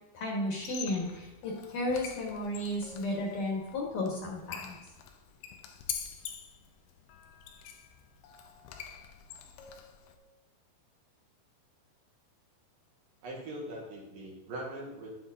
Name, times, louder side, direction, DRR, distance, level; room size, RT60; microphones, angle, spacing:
voice 1, 0.1-4.7, left 1 dB, 55° left, -2 dB, 2.9 m, -33 dB
Squeak, 0.5-10.1, left 8 dB, 85° left, 3.2 m, -45 dB
voice 2, 13.2-15.2, right 1 dB, 60° right, -2 dB, 2.9 m, -41 dB
11.0 x 9.2 x 3.8 m, 1.0 s
omnidirectional pair, 5.1 m